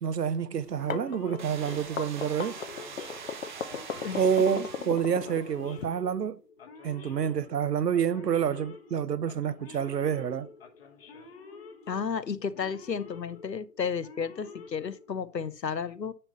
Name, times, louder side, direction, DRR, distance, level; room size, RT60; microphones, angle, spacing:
voice 1, 0.0-2.6 4.2-6.4 6.8-10.5, right 8 dB, 75° right, 0.7 m, -28 dB
sound 1, 0.6-5.9, left 7 dB, 55° left, 0.8 m, -37 dB
Male speech man speaking / Siren, 0.8-15.5, left 4 dB, 35° left, 1.2 m, -49 dB
sound 2, 1.4-5.4, right 6 dB, 30° right, 0.8 m, -44 dB
voice 2, 4.0-4.7 11.9-16.1, left 6 dB, 85° left, 0.8 m, -33 dB
9.8 x 3.4 x 5.4 m
figure-of-eight pair, 135°, 49 cm